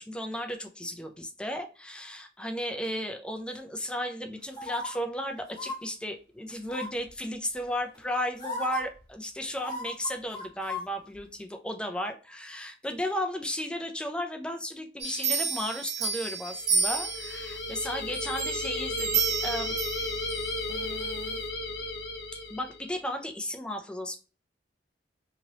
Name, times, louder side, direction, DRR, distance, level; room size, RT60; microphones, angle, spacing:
voice 1, 0.0-20.1 20.7-21.4 22.5-24.2, equal, 5° left, 4 dB, 0.4 m, -35 dB
sound 1, 4.5-4.9 5.5-5.8 6.7-7.1 7.9-8.0 8.4-8.8 9.6-10.8 11.2-11.3, left 2 dB, 25° left, 1.1 m, -35 dB
sound 2, 15.0-17.6 18.1-20.5 21.0-21.1, right 5 dB, 40° right, 1.0 m, -30 dB
sound 3, 16.6-23.0, left 2 dB, 65° left, 0.5 m, -34 dB
2.9 x 2.8 x 2.8 m, 0.35 s
head